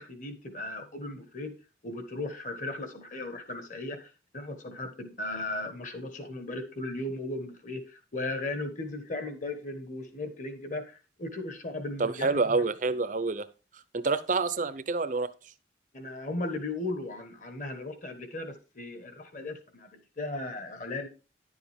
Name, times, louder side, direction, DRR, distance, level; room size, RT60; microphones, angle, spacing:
voice 1, 0.0-1.6 1.8-12.6 15.9-21.1, left 2 dB, 45° left, 8 dB, 1.4 m, -37 dB
voice 2, 12.0-13.5 13.9-15.3, right 3 dB, 45° right, 14 dB, 0.6 m, -27 dB
10.5 x 7.1 x 3.6 m, 0.32 s
head